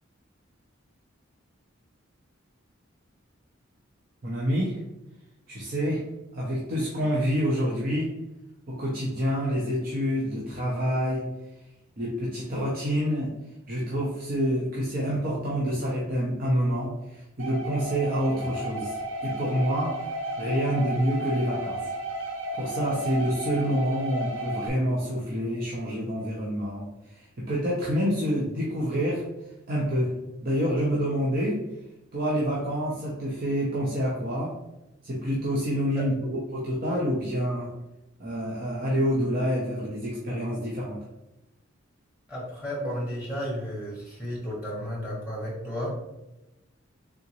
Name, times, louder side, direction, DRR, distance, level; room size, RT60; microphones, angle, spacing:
voice 1, 4.2-4.8 5.5-6.0 6.3-8.1 8.7-11.2 12.0-13.3 13.7-20.1 20.4-21.8 22.6-29.2 29.7-30.1 30.4-31.6 32.1-34.5 35.0-37.7 38.2-41.0, equal, 45° right, -4 dB, 0.7 m, -27 dB
sound 1, 17.4-24.7, right 1 dB, 85° right, 0.8 m, -33 dB
voice 2, 42.3-45.9, equal, 10° right, -6 dB, 1.2 m, -33 dB
3.8 x 3.5 x 3.0 m, 0.96 s
head